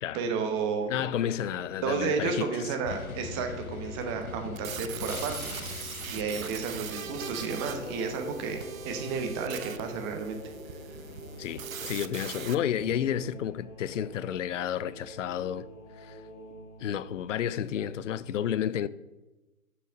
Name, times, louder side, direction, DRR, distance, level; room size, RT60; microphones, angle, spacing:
voice 1, 0.1-0.9 1.8-5.4 5.7-5.8 6.1-10.4 10.7-10.8, right 5 dB, 20° right, 0.8 m, -32 dB
sound 1, 0.8-18.2, equal, 5° left, 0.5 m, -45 dB
voice 2, 0.9-2.5 11.4-15.7 16.0-16.2 16.8-18.9, left 10 dB, 60° left, 0.5 m, -31 dB
sound 2, 2.8-11.6, left 6 dB, 80° left, 1.0 m, -44 dB
sound 3, 4.6-12.5, right 8 dB, 70° right, 0.7 m, -41 dB
6.5 x 6.1 x 6.2 m
figure-of-eight pair, 130°, 43 cm